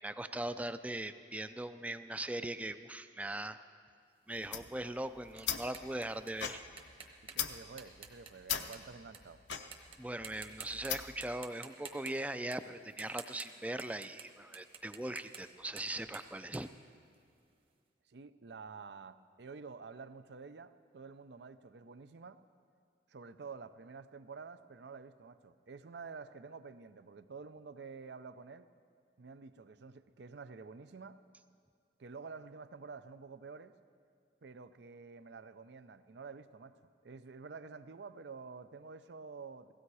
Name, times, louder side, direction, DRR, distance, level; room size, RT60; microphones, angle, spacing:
voice 1, 0.0-3.6 4.3-6.6 10.0-16.7, right 1 dB, 10° right, 12 dB, 0.3 m, -40 dB
sound 1, 4.3-9.2 9.5-10.0 10.2-10.9 11.2-17.5, right 6 dB, 30° right, 1.1 m, -51 dB
sound 2, 4.4-11.3, left 9 dB, 80° left, 0.7 m, -41 dB
voice 2, 7.2-9.4 18.1-22.4 23.1-28.7 29.2-31.2 32.0-33.7 34.4-36.7 37.0-39.7, right 4 dB, 70° right, 13 dB, 0.5 m, -49 dB
17.0 x 15.5 x 4.8 m, 2.3 s
head